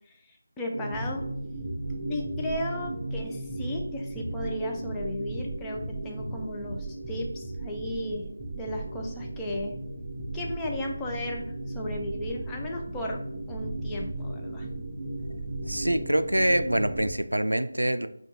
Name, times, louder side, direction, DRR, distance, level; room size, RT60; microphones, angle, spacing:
voice 1, 0.1-1.2 2.1-9.8 10.3-11.4 11.7-13.2 13.5-14.7, left 1 dB, 10° left, -1 dB, 0.4 m, -35 dB
sound 1, 0.7-17.0, right 1 dB, 45° right, 0.7 m, -37 dB
sound 2, 0.9-17.1, right 2 dB, 15° right, 0.8 m, -39 dB
voice 2, 15.7-18.1, right 1 dB, 85° right, 11 dB, 0.3 m, -25 dB
4.3 x 2.3 x 3.9 m, 0.70 s
figure-of-eight pair, 160°, 0 cm